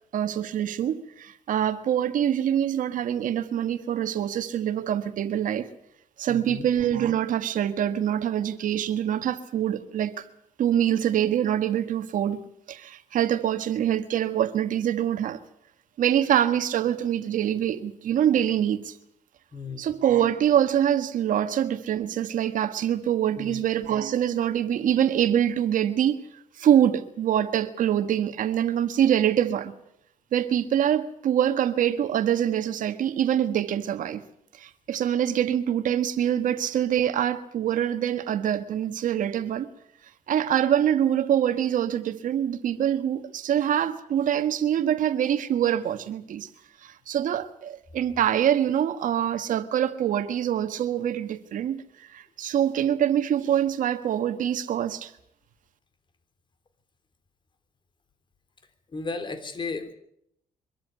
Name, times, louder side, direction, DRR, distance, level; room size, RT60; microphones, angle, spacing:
voice 1, 0.1-5.7 6.2-10.3 10.6-12.4 12.7-15.4 16.0-19.0 19.8-29.7 30.3-34.2 34.5-39.7 40.3-46.5 46.8-55.1, right 10 dB, 70° right, 1.4 m, -25 dB
voice 2, 6.3-6.7 19.5-19.8 23.4-23.6 58.9-59.9, left 4 dB, 35° left, 3.7 m, -34 dB
24.0 x 14.0 x 9.6 m
cardioid pair, 100°, 14 cm